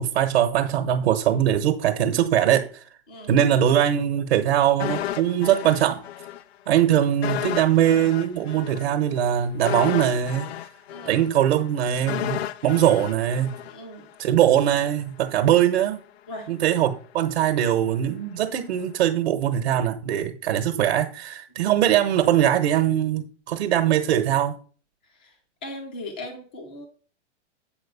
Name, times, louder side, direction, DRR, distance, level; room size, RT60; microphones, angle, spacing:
voice 1, 0.0-2.8 3.3-6.0 6.7-10.5 11.0-13.6 14.2-16.0 16.5-24.5, right 10 dB, 55° right, 1.1 m, -21 dB
sound 1, 4.8-6.4 6.7-6.8 7.2-14.3 14.6-14.7, left 11 dB, 60° left, 0.5 m, -32 dB
voice 2, 10.9-11.2 13.7-14.1 16.3-16.5 25.1-25.4 25.6-26.9, left 1 dB, 10° left, 0.4 m, -38 dB
7.9 x 4.3 x 6.7 m
supercardioid pair, 180°, 36 cm